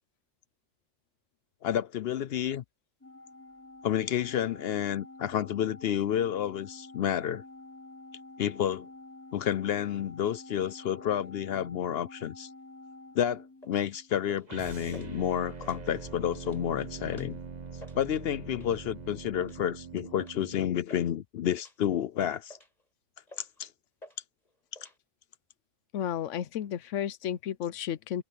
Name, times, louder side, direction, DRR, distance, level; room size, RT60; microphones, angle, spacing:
voice 1, 1.6-2.6 3.8-7.4 8.4-8.9 9.3-12.5 13.1-17.4 17.9-22.6 23.4-23.7, left 10 dB, 65° left, 0.7 m, -30 dB
Organ, 3.0-14.3, left 2 dB, 10° left, 4.8 m, -49 dB
sound 1, 13.6-13.8 14.3-14.6 14.9-15.1 15.5-16.1 16.4-16.6 17.1-17.4 17.7-18.0 18.5-18.8 19.4-19.6 20.2-20.4 20.6-21.1 21.6-21.8 22.2-22.8 23.3-23.6 24.0-24.2 24.4-25.0, left 1 dB, 30° left, 5.7 m, -51 dB
sound 2, 14.5-20.6, right 5 dB, 35° right, 1.2 m, -43 dB
voice 2, 25.9-28.2, left 10 dB, 80° left, 1.0 m, -33 dB
omnidirectional pair, 1.3 m